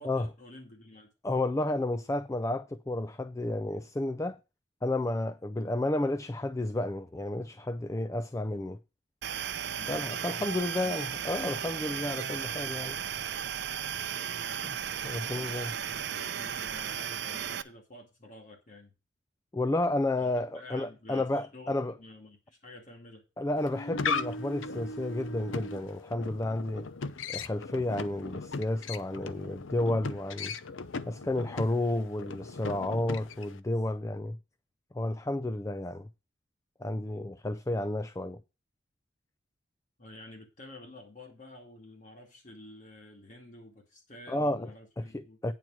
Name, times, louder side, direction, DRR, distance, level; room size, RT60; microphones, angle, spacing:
voice 1, 0.0-1.1 9.7-10.1 10.5-11.1 15.3-18.9 20.2-23.2 40.0-45.4, left 1 dB, 40° left, 2.3 m, -50 dB
voice 2, 1.2-4.4 4.8-8.8 9.9-13.0 14.6-14.8 15.0-15.7 19.5-21.9 23.4-26.9 27.3-30.5 31.1-34.4 34.9-36.1 36.8-38.4 44.3-44.7 45.0-45.5, left 1 dB, 15° left, 0.4 m, -31 dB
sound 1, 9.2-17.6, right 8 dB, 60° right, 0.6 m, -35 dB
sound 2, 23.6-33.6, left 4 dB, 85° left, 0.7 m, -38 dB
9.2 x 4.5 x 7.3 m
head